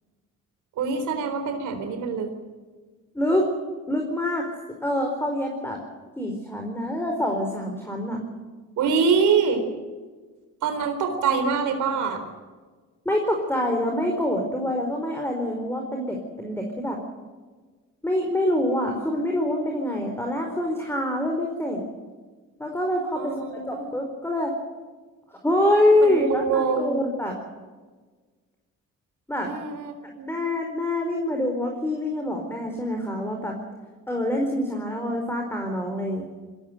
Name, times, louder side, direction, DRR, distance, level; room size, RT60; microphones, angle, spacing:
voice 1, 0.8-2.3 8.8-9.6 10.6-12.2 23.1-23.9 26.0-27.0 29.4-30.3, right 5 dB, 80° right, 6 dB, 4.0 m, -25 dB
voice 2, 3.1-3.5 3.9-4.5 4.8-5.8 6.2-8.2 13.0-17.0 18.0-21.8 22.6-23.4 23.7-24.5 25.3-27.4 29.3-29.5 30.3-33.6 34.1-36.2, left 1 dB, 10° left, 2 dB, 4.6 m, -25 dB
21.0 x 17.5 x 9.3 m, 1.4 s
cardioid pair, 90°, 30 cm